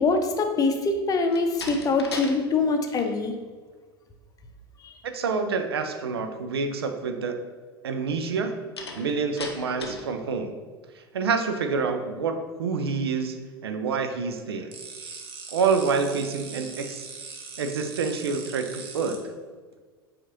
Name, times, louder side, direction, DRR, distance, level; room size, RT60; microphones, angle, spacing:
voice 1, 0.0-3.3 4.8-4.9, left 3 dB, 30° left, 5 dB, 0.6 m, -24 dB
Slam, 1.3-2.4 2.7-3.1 8.8-10.1, left 3 dB, 90° left, 0.5 m, -37 dB
voice 2, 5.1-7.4 7.8-8.5 9.0-10.6 11.1-13.3 13.6-14.7 15.5-17.1 17.6-19.2, right 5 dB, 80° right, 7 dB, 0.5 m, -27 dB
sound 1, 14.7-19.2, right 5 dB, 45° right, 0.9 m, -41 dB
7.1 x 2.5 x 2.9 m, 1.5 s
figure-of-eight pair, 80°, 13 cm